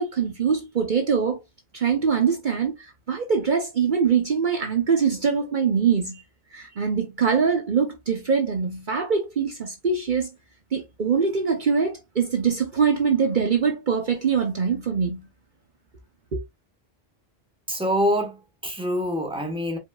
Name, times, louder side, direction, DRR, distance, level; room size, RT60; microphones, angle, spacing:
voice 1, 0.0-1.4 1.7-6.2 6.5-10.3 10.7-15.3 16.3-16.4, right 6 dB, 50° right, 1.0 m, -23 dB
voice 2, 17.7-19.8, equal, 5° right, 1.3 m, -25 dB
5.0 x 4.0 x 2.4 m
omnidirectional pair, 1.1 m